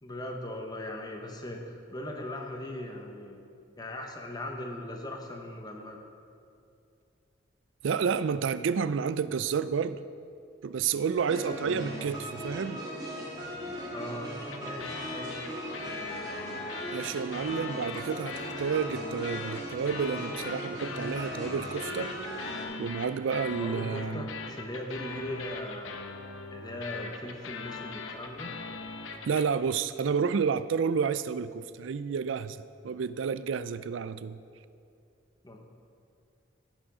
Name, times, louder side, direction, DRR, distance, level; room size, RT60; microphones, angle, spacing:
voice 1, 0.0-3.5 3.8-6.0 13.9-15.4 23.6-26.0 26.5-28.5 35.4-35.6, left 1 dB, 20° left, 2 dB, 0.9 m, -39 dB
voice 2, 7.8-10.0 10.6-12.8 16.9-22.1 22.8-24.3 29.3-32.6 32.8-34.4, right 6 dB, 70° right, 15 dB, 0.4 m, -30 dB
sound 1, 11.3-12.2 14.5-29.5, left 4 dB, 80° left, 0.9 m, -41 dB
sound 2, 11.3-22.6, right 1 dB, 20° right, 2.0 m, -38 dB
16.0 x 6.2 x 4.8 m, 2.5 s
head